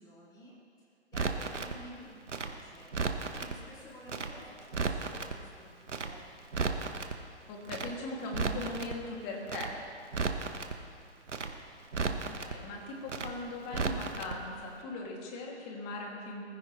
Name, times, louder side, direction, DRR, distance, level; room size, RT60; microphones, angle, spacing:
voice 1, 0.0-6.3 10.3-11.0, equal, 10° left, -5 dB, 2.6 m, -52 dB
Crackle, 1.1-1.7 2.3-3.5 4.1-4.3 4.6-5.3 5.9-6.1 6.4-7.1 7.7-7.9 8.2-8.9 9.5-9.7 10.0-10.7 11.3-11.5 11.8-12.5 13.1-13.3 13.6-14.3 14.6-14.7, right 4 dB, 90° right, 1.2 m, -34 dB
voice 2, 7.5-9.8 12.1-16.4, left 2 dB, 25° left, -1 dB, 2.5 m, -39 dB
21.0 x 15.0 x 3.2 m, 2.3 s
hypercardioid pair, 135°, 35 cm